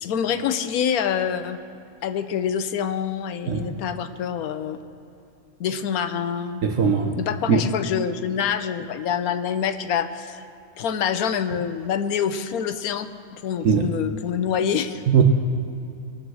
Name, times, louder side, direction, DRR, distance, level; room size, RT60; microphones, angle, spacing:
voice 1, 0.0-1.6 2.0-4.8 5.6-10.4 10.8-15.0, left 8 dB, 80° left, 10 dB, 1.2 m, -26 dB
voice 2, 6.6-7.2 7.5-7.6 13.6-13.9 15.1-15.2, right 6 dB, 65° right, 3 dB, 1.2 m, -19 dB
21.5 x 8.0 x 6.2 m, 2.6 s
omnidirectional pair, 1.5 m